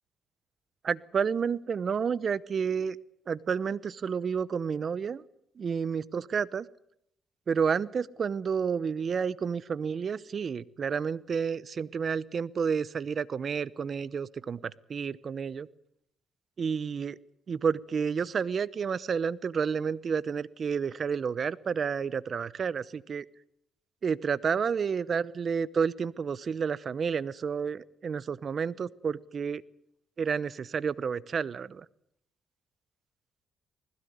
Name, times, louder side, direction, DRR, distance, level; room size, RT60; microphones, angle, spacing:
voice 1, 0.8-3.0 3.3-5.2 5.6-6.7 7.5-15.7 16.6-17.2 17.5-23.3 24.0-29.6 30.2-31.8, right 6 dB, 45° right, 19 dB, 0.8 m, -30 dB
20.5 x 16.0 x 9.5 m, 0.74 s
cardioid pair, 90°, 0 cm